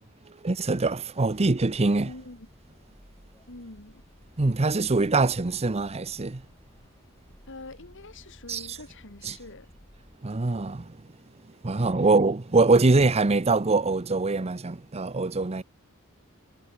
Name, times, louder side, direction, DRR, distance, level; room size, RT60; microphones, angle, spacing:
voice 1, 0.4-2.2 4.4-6.4 8.5-8.8 9.2-9.4 10.2-11.0 11.6-15.6, right 3 dB, 30° right, 0.7 m, -23 dB
sound 1, 1.4-10.2, equal, 15° left, 3.9 m, -55 dB
voice 2, 2.0-2.5 3.5-4.0 7.5-9.7 11.9-12.1, left 2 dB, 60° left, 2.6 m, -45 dB
head